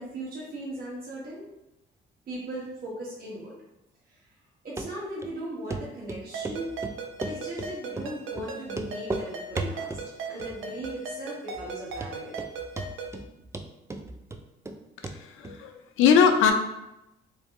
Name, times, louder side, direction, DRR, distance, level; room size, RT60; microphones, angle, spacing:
voice 1, 0.0-1.5 2.3-3.5 4.1-4.2 4.6-6.7 7.2-10.0 10.3-12.4, right 1 dB, 50° right, -7 dB, 1.1 m, -38 dB
Run, 4.8-4.9 5.2-5.3 5.7-5.8 6.1-6.6 6.8-7.7 8.0-8.1 8.4-8.5 8.7-9.3 9.6-10.1 10.4-10.8 11.1-11.2 11.7-11.8 12.0-12.5 12.8-13.3 13.5-14.8 15.0-15.2 15.4-15.5, right 2 dB, 15° right, 0.3 m, -34 dB
Ringtone, 6.3-13.2, right 4 dB, 85° right, 0.6 m, -38 dB
voice 2, 15.0-16.5, left 7 dB, 90° left, 6 dB, 0.5 m, -21 dB
3.2 x 2.6 x 3.6 m, 0.91 s
cardioid pair, 90°, 20 cm